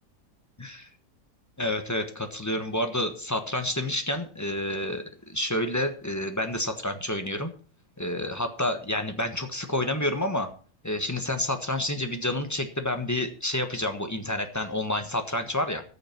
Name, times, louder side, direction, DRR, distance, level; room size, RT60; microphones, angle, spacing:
voice 1, 0.6-0.9 1.6-7.5 8.0-10.5 10.8-15.8, left 1 dB, 10° left, 6 dB, 1.2 m, -29 dB
14.5 x 6.6 x 6.0 m, 0.41 s
omnidirectional pair, 1.7 m